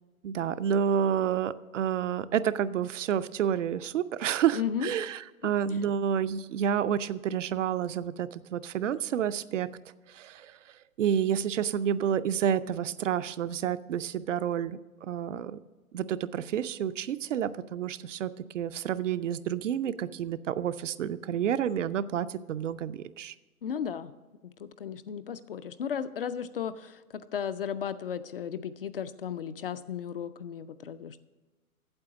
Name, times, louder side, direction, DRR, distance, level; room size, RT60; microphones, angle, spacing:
voice 1, 0.2-9.7 10.1-15.6 15.9-23.3, right 9 dB, 60° right, 13 dB, 0.5 m, -29 dB
voice 2, 4.5-4.9 23.6-24.1 24.6-31.2, left 8 dB, 45° left, 12 dB, 0.4 m, -35 dB
8.8 x 7.6 x 6.0 m, 1.2 s
figure-of-eight pair, 125°, 44 cm